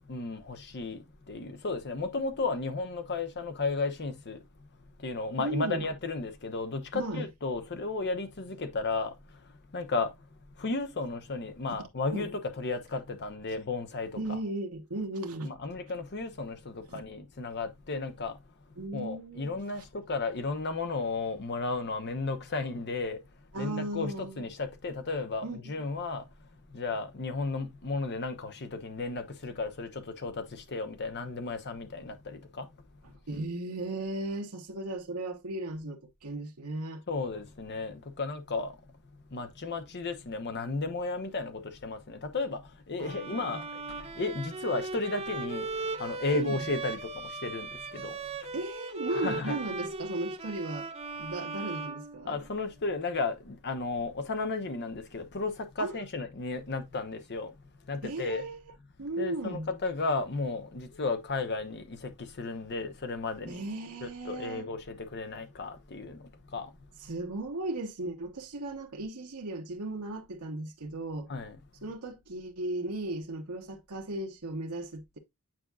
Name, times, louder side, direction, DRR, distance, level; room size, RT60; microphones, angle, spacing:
voice 1, 0.1-1.0 1.3-4.4 5.0-9.1 9.7-10.1 10.6-14.4 15.4-18.3 18.9-23.2 23.6-26.2 26.7-30.4 30.7-32.7 37.1-38.7 39.3-42.6 42.9-43.6 44.2-45.7 46.0-47.0 47.4-48.2 49.1-49.5 52.3-55.5 55.8-57.5 57.9-58.4 59.2-62.1 62.4-63.6 64.0-66.2 66.5-66.7 71.3-71.6, left 3 dB, 50° left, 0.9 m, -34 dB
voice 2, 5.4-5.9 6.9-7.3 12.1-12.3 14.1-15.5 16.9-17.0 18.8-19.5 19.8-19.9 23.5-24.4 25.4-25.7 33.0-37.0 43.0-43.6 46.3-46.6 48.5-50.9 51.2-52.4 55.8-56.0 58.0-58.6 59.0-59.7 63.5-64.7 67.0-71.3 71.8-75.2, right 2 dB, 80° right, 1.1 m, -36 dB
Bowed string instrument, 43.0-52.7, right 3 dB, 30° right, 0.6 m, -38 dB
8.9 x 4.5 x 2.4 m
head